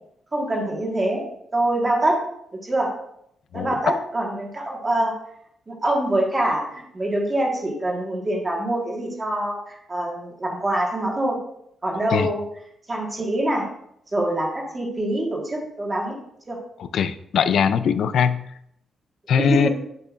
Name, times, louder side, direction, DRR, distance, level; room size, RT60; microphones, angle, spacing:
voice 1, 0.3-1.3 1.5-2.2 2.5-2.9 3.5-5.1 5.7-11.4 11.8-12.4 12.9-13.7 14.1-16.2 16.5-16.6 19.4-19.7, right 1 dB, 20° right, -1 dB, 1.5 m, -24 dB
voice 2, 16.8-18.4 19.3-19.7, left 7 dB, 65° left, 12 dB, 0.4 m, -21 dB
8.0 x 6.7 x 2.4 m, 0.73 s
wide cardioid pair, 155°, 0 cm